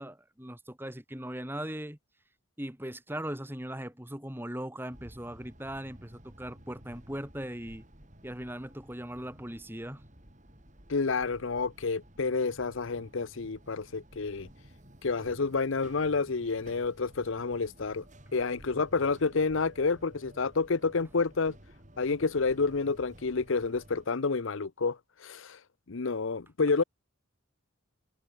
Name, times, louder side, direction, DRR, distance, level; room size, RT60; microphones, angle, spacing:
voice 1, 0.0-2.0 2.6-7.8 8.2-10.1, right 1 dB, 10° right, 3.6 m, -39 dB
sound 1, 4.9-24.1, equal, 35° right, 6.5 m, -54 dB
voice 2, 10.9-14.5 15.0-18.0 18.3-21.6 22.0-25.6 25.9-26.8, left 4 dB, 65° left, 0.7 m, -29 dB
head